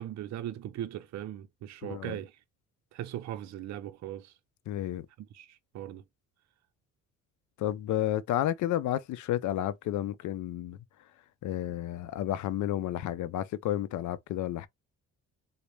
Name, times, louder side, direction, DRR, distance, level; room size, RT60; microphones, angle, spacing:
voice 1, 0.0-2.4 2.9-4.3 5.2-6.0, right 12 dB, 65° right, 0.5 m, -39 dB
voice 2, 1.8-2.2 4.7-5.1 7.6-10.8 11.4-14.7, left 12 dB, 75° left, 0.5 m, -31 dB
3.9 x 2.0 x 3.3 m
cardioid pair, 90°, 30 cm